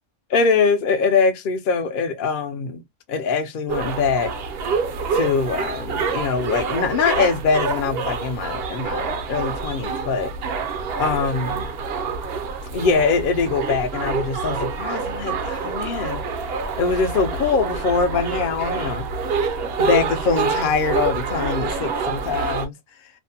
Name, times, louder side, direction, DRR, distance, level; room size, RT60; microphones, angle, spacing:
voice 1, 0.3-2.8 3.1-4.3 5.1-10.3 11.0-11.7 12.7-16.2 16.8-19.1 19.8-22.7, left 5 dB, 60° left, 0.6 m, -23 dB
sound 1, 3.7-22.7, right 5 dB, 60° right, 0.7 m, -27 dB
2.6 x 2.1 x 2.7 m
omnidirectional pair, 1.3 m